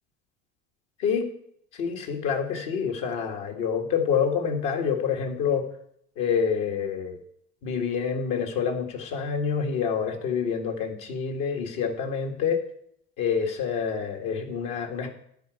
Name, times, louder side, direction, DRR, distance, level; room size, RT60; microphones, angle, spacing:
voice 1, 1.8-5.7 6.2-7.2 7.6-12.6 13.2-15.1, left 6 dB, 65° left, 4 dB, 2.0 m, -27 dB
10.5 x 5.3 x 7.9 m, 0.69 s
hypercardioid pair, 75°, 38 cm